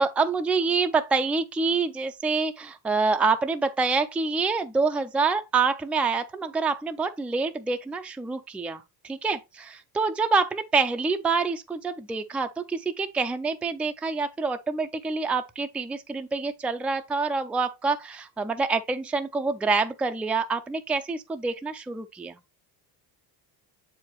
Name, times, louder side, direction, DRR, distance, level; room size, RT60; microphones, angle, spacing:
voice 1, 0.0-22.4, right 4 dB, 5° right, 0.4 m, -26 dB
7.0 x 4.8 x 3.0 m
supercardioid pair, 90°, 49 cm